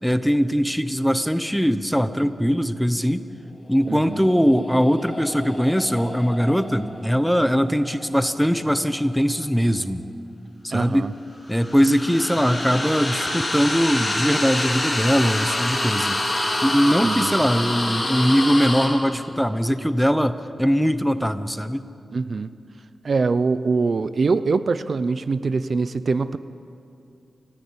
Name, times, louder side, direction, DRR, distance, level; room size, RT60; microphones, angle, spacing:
voice 1, 0.0-3.2 3.7-10.0 10.6-11.1 11.5-16.2 16.6-21.9, equal, ahead, 11 dB, 0.9 m, -21 dB
sound 1, 3.7-8.9 11.3-18.9, left 1 dB, 25° left, 5.0 m, -27 dB
voice 2, 3.9-4.2 10.7-11.1 17.0-17.4 22.1-22.5 23.0-26.4, right 4 dB, 55° right, 13 dB, 0.7 m, -23 dB
29.5 x 15.0 x 8.7 m, 2.5 s
wide cardioid pair, 105°, 0 cm